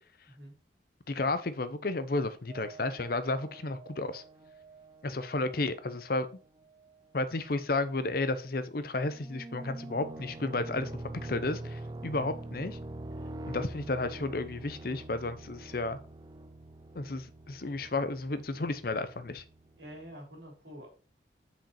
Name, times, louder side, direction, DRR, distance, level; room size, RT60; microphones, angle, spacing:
voice 1, 0.3-0.6 12.2-12.3 19.8-20.9, equal, 70° right, 1 dB, 3.1 m, -47 dB
voice 2, 1.1-4.2 5.0-6.3 7.1-12.8 13.5-16.0 16.9-19.4, left 2 dB, 50° left, 12 dB, 0.6 m, -32 dB
sound 1, 2.5-7.0 7.5-7.6 9.1-20.1, right 2 dB, 20° right, 0.3 m, -45 dB
6.0 x 5.0 x 4.3 m, 0.36 s
head